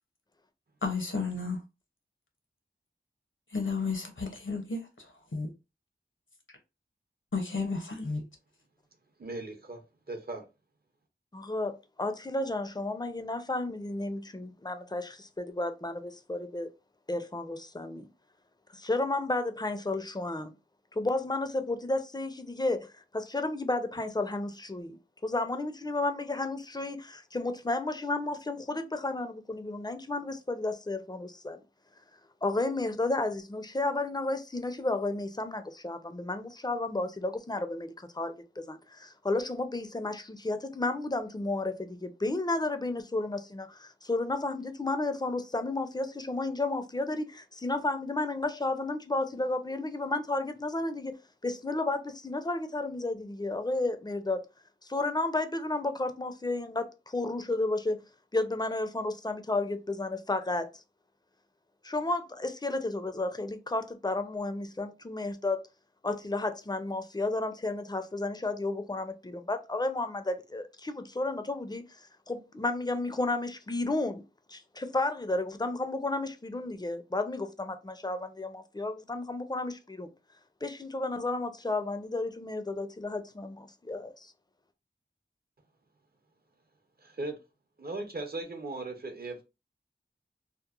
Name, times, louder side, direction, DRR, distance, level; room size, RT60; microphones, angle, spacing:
voice 1, 0.8-1.6 3.5-5.5 7.3-8.2, left 4 dB, 70° left, 0.7 m, -33 dB
voice 2, 9.2-10.5 87.0-87.4 87.8-89.4, right 2 dB, 50° right, 0.6 m, -38 dB
voice 3, 11.3-16.7 17.1-18.1 18.7-20.5 20.9-31.6 32.4-51.1 51.4-54.4 54.8-58.0 58.3-60.8 61.8-65.7 66.0-74.2 74.5-80.1 80.6-84.3, left 2 dB, 20° left, 0.4 m, -32 dB
2.9 x 2.0 x 2.3 m
wide cardioid pair, 45°, 20 cm